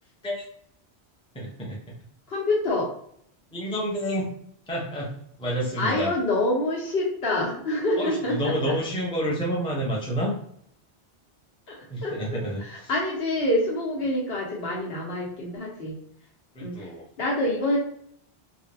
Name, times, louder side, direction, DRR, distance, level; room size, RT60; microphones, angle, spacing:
voice 1, 1.3-1.8 3.5-4.3 4.7-6.1 8.0-10.3 11.9-12.9 16.5-17.0, equal, 5° left, -3 dB, 0.6 m, -29 dB
voice 2, 2.3-2.9 5.8-8.7 11.7-16.0 16.6-16.9 17.2-17.8, left 1 dB, 65° left, -3 dB, 1.2 m, -27 dB
3.8 x 2.3 x 3.3 m, 0.67 s
omnidirectional pair, 1.1 m